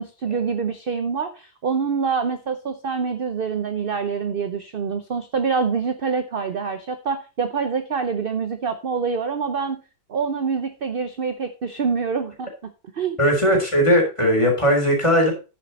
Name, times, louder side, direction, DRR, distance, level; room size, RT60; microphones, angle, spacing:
voice 1, 0.0-9.8 10.1-12.5 12.9-13.2, right 5 dB, 45° right, 9 dB, 0.7 m, -25 dB
voice 2, 13.2-15.3, equal, 15° left, 1 dB, 3.6 m, -18 dB
9.7 x 7.6 x 4.1 m, 0.31 s
omnidirectional pair, 1.8 m